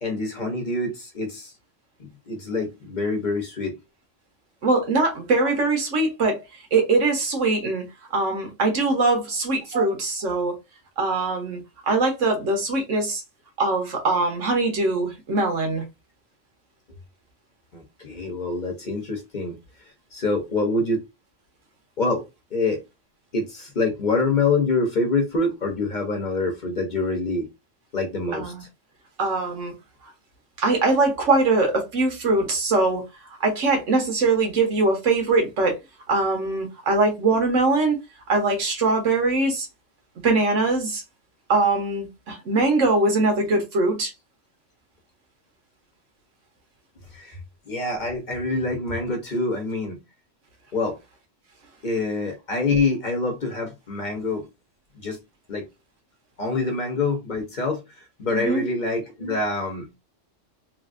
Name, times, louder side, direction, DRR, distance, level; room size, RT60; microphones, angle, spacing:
voice 1, 0.0-1.5 2.0-3.7 9.7-9.9 17.7-19.6 20.1-21.0 22.0-22.2 22.5-22.8 23.3-27.5 27.9-28.5 47.1-47.4 47.7-50.0 50.7-51.0 51.8-54.5 54.9-55.2 55.5-55.7 56.4-57.8 58.2-60.0, left 3 dB, 45° left, 0.9 m, -26 dB
voice 2, 4.6-6.4 6.7-7.8 8.1-10.5 11.0-11.6 11.9-13.2 13.6-15.8 28.3-28.6 29.2-29.7 30.6-33.0 33.4-35.8 36.1-38.0 38.3-39.7 40.2-41.0 41.5-44.1 58.3-58.6, right 3 dB, 90° right, 1.3 m, -22 dB
3.2 x 2.4 x 2.5 m
omnidirectional pair, 1.2 m